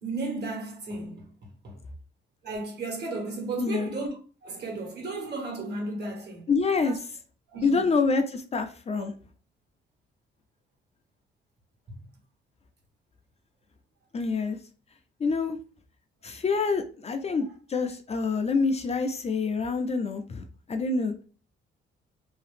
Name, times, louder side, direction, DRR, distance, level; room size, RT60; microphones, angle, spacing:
voice 1, 0.0-1.3 1.6-1.8 2.4-4.1 4.4-6.5 6.8-7.0 7.5-7.9 8.9-9.0 11.9-12.1, right 3 dB, 55° right, 1.4 m, -34 dB
voice 2, 3.6-3.9 6.5-7.0 7.6-9.1 14.1-14.6 15.2-15.6 16.2-21.2, left 4 dB, 30° left, 0.4 m, -27 dB
2.8 x 2.4 x 3.3 m
cardioid pair, 90°, 20 cm